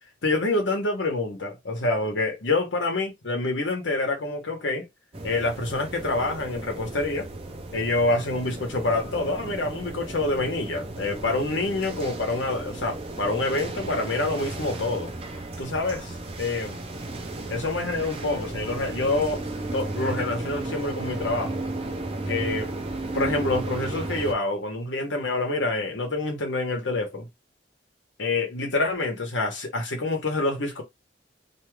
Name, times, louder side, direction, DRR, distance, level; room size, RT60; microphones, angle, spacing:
voice 1, 0.2-4.9 5.2-7.3 7.7-15.1 15.6-16.8 17.5-19.5 19.7-21.6 22.3-22.7 23.1-27.3 28.2-30.8, left 2 dB, 80° left, 1.0 m, -27 dB
sound 1, 5.1-24.3, right 2 dB, 30° right, 0.5 m, -34 dB
2.7 x 2.4 x 3.2 m
head